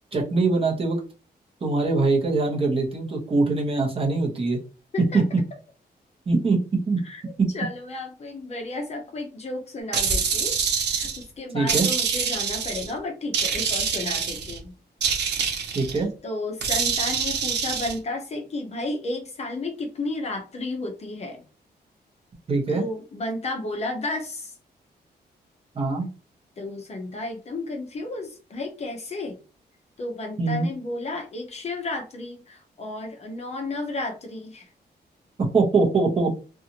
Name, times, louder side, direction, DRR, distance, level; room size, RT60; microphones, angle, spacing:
voice 1, 0.1-1.0 1.6-4.6 5.1-5.2 6.3-7.0 7.4-7.5 11.5-11.9 15.7-16.1 22.5-22.8 25.7-26.1 30.4-30.7 35.5-36.3, right 3 dB, 35° right, -1 dB, 0.8 m, -22 dB
voice 2, 7.5-14.7 16.2-21.4 22.7-24.6 26.6-29.4 30.0-34.7, left 2 dB, 40° left, 3 dB, 0.6 m, -32 dB
sound 1, 9.9-11.2 11.7-12.9 13.3-14.6 15.0-16.0 16.6-17.9, right 6 dB, 85° right, 0.6 m, -25 dB
2.7 x 2.4 x 2.8 m, 0.35 s
wide cardioid pair, 170°, 17 cm